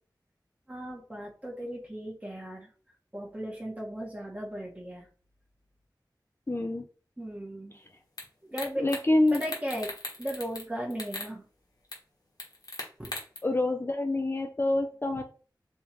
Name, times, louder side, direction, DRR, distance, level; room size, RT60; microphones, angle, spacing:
voice 1, 0.7-2.7 3.1-5.1 7.2-7.7 8.4-8.9 9.3-9.9 10.2-11.4 13.0-13.1, equal, 20° right, -2 dB, 1.4 m, -36 dB
voice 2, 6.5-6.8 8.8-9.4 13.4-15.2, left 2 dB, 30° left, 3 dB, 0.4 m, -26 dB
sound 1, 8.2-8.3 8.6-9.0 9.3-10.6 10.9-11.3 11.9-12.0 12.4-13.4, left 2 dB, 55° left, 1.1 m, -38 dB
3.5 x 3.2 x 3.0 m, 0.40 s
wide cardioid pair, 55°, 8 cm